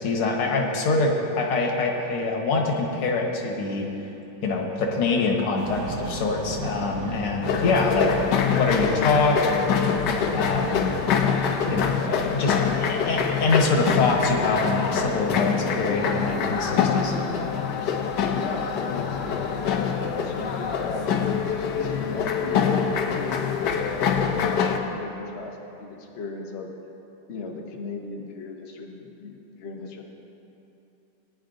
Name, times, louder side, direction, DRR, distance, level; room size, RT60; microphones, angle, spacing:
voice 1, 0.0-3.9 4.4-9.7 10.1-10.9 11.7-17.2, left 3 dB, 90° left, 1 dB, 2.1 m, -25 dB
sound 1, 5.5-14.4, right 2 dB, 85° right, 2.4 m, -38 dB
sound 2, 7.4-24.8, left 6 dB, 65° left, 1.1 m, -25 dB
voice 2, 18.2-21.2 21.7-26.7 27.3-30.0, left 3 dB, 45° left, 1 dB, 0.9 m, -37 dB
19.0 x 10.0 x 2.6 m, 3.0 s
omnidirectional pair, 2.3 m